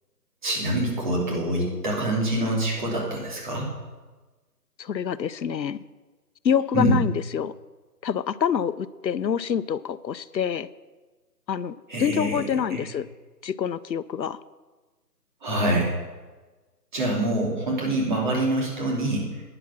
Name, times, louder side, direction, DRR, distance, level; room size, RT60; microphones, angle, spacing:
voice 1, 0.4-3.7 6.7-6.9 11.9-12.8 15.4-15.9 16.9-19.3, right 1 dB, 30° right, -2 dB, 2.9 m, -25 dB
voice 2, 4.8-5.8 6.4-7.5 8.0-10.7 11.5-13.1 13.4-14.4, left 8 dB, 90° left, 17 dB, 0.7 m, -26 dB
11.0 x 10.0 x 5.9 m, 1.3 s
figure-of-eight pair, 165°, 50 cm